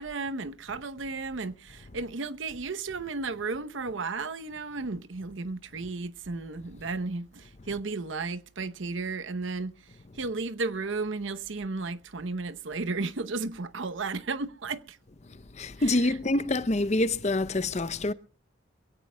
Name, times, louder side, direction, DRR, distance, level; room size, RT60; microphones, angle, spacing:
voice 1, 0.0-15.0 15.8-16.5, right 3 dB, 70° right, 0.8 m, -34 dB
voice 2, 15.6-18.1, left 2 dB, 35° left, 0.6 m, -26 dB
23.5 x 17.0 x 2.2 m
head